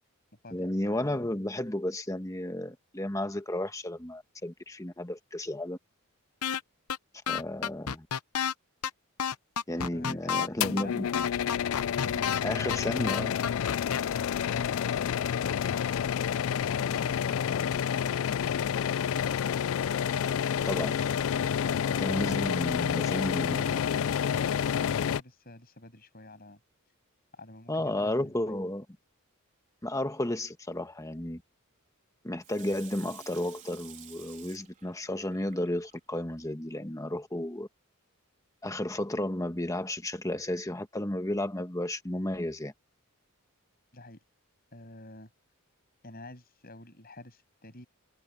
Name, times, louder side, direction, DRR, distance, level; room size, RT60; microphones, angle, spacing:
voice 1, 0.5-5.8 7.3-8.1 9.7-11.0 12.4-13.3 20.6-21.0 22.0-23.8 27.7-28.8 29.8-31.4 32.2-37.7 38.6-42.7, left 1 dB, 15° left, 1.3 m, -33 dB
voice 2, 1.0-1.3 9.9-11.6 21.6-23.4 23.7-26.6 27.3-28.6 43.9-44.2 44.7-45.3 46.0-47.9, left 2 dB, 45° left, 7.9 m, -48 dB
sound 1, 6.4-6.6 6.9-7.0 7.3-8.5 8.8-8.9 9.2-10.5 10.8-10.9 11.1-12.4 12.7-12.8 13.1-14.0, left 7 dB, 85° left, 0.8 m, -30 dB
sound 2, 10.6-25.2, left 8 dB, 60° left, 0.3 m, -29 dB
Water tap faucet / Sink (filling or washing), 32.4-36.2 36.7-36.8, right 8 dB, 35° right, 3.7 m, -52 dB
head